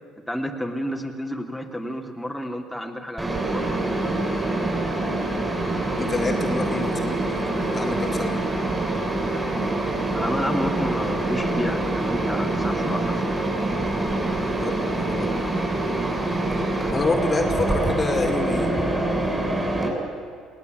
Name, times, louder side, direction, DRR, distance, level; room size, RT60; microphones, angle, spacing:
voice 1, 0.3-3.8 4.6-4.8 10.1-13.4, equal, ahead, 0 dB, 2.9 m, -30 dB
Mechanisms, 3.2-19.9, right 2 dB, 20° right, 7.1 m, -25 dB
voice 2, 6.0-8.4 14.6-15.3 16.9-18.7, left 3 dB, 30° left, 4 dB, 2.5 m, -27 dB
21.5 x 17.0 x 9.3 m, 2.3 s
hypercardioid pair, 65°, 0 cm